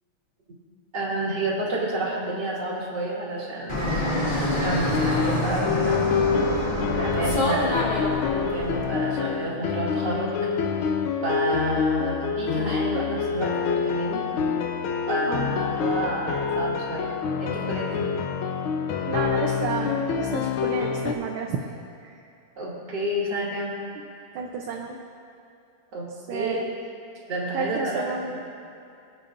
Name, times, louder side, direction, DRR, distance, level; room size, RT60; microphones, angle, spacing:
voice 1, 0.9-6.0 6.8-10.3 11.2-14.3 15.1-17.1 17.4-18.1 22.6-23.7 25.9-26.6 27.3-28.1, right 1 dB, 50° right, -6 dB, 3.1 m, -30 dB
Fixed-wing aircraft airplane, 3.7-8.8, left 1 dB, 25° left, 1.5 m, -26 dB
sound 1, 4.9-21.1, left 6 dB, 75° left, 1.5 m, -26 dB
voice 2, 19.1-21.7 22.0-22.1 24.0-24.1 24.3-25.0 26.3-26.6 27.5-28.4, right 5 dB, 75° right, 1 dB, 1.6 m, -31 dB
24.5 x 8.5 x 2.6 m, 2.5 s
omnidirectional pair, 2.4 m